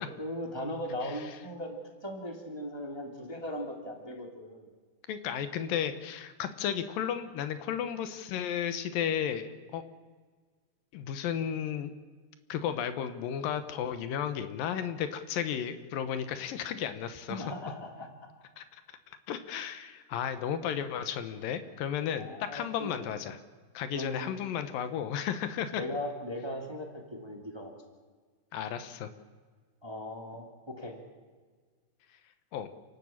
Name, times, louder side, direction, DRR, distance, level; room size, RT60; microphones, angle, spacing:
voice 1, 0.0-4.7 17.3-18.1 20.6-20.7 22.2-23.0 23.9-24.3 25.8-27.7 29.8-31.0, left 1 dB, 10° right, 3 dB, 2.0 m, -38 dB
voice 2, 5.1-9.8 10.9-11.9 12.5-17.4 18.6-18.8 19.3-23.4 23.7-25.8 28.5-29.1 32.5-32.7, left 9 dB, 80° left, 11 dB, 2.8 m, -33 dB
29.0 x 12.0 x 8.7 m, 1.5 s
omnidirectional pair, 4.1 m